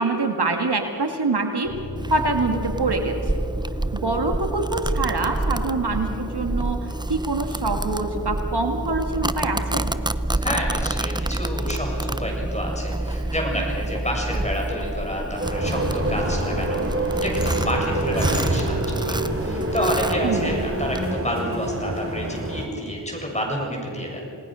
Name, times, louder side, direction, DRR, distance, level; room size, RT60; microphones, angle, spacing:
voice 1, 0.0-1.7 2.1-3.3 3.9-9.9 20.2-20.5, right 3 dB, 60° right, 4 dB, 2.0 m, -25 dB
Bass guitar, 1.6-7.9, left 1 dB, 80° left, 4.7 m, -39 dB
Domestic sounds home sounds, 2.0-21.1, right 1 dB, 10° right, 0.6 m, -28 dB
voice 2, 10.4-16.8 17.2-24.2, equal, 15° left, -1 dB, 7.1 m, -29 dB
sound 1, 15.4-22.7, right 1 dB, 30° right, 3.5 m, -26 dB
29.0 x 19.0 x 6.3 m, 2.8 s
wide cardioid pair, 55°, 44 cm